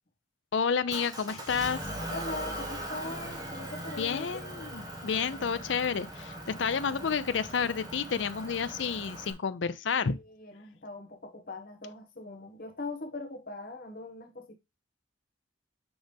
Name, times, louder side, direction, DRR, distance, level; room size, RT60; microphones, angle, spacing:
voice 1, 0.5-1.8 4.0-10.2, left 6 dB, 75° left, 0.5 m, -30 dB
Motor vehicle (road) / Engine, 0.9-9.3, right 1 dB, 20° right, 1.5 m, -40 dB
voice 2, 2.1-4.3 9.9-14.5, left 2 dB, 50° left, 1.4 m, -41 dB
6.1 x 5.1 x 3.4 m
head